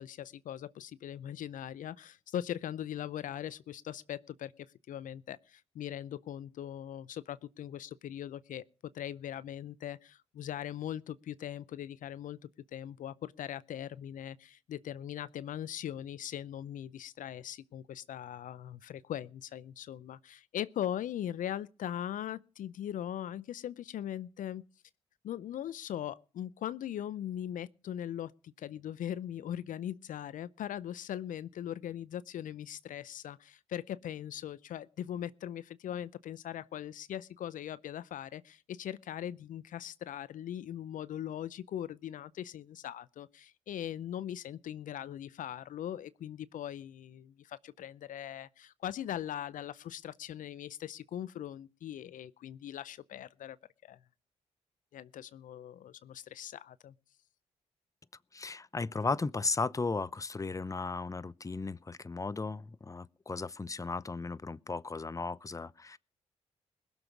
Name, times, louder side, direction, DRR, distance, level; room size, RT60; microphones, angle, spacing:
voice 1, 0.0-12.4 12.7-24.6 25.2-53.6 53.8-54.0 54.9-56.9, left 10 dB, 65° left, 0.6 m, -40 dB
voice 2, 58.3-66.0, left 3 dB, 25° left, 0.7 m, -35 dB
20.5 x 7.1 x 6.0 m
hypercardioid pair, 45°, 14 cm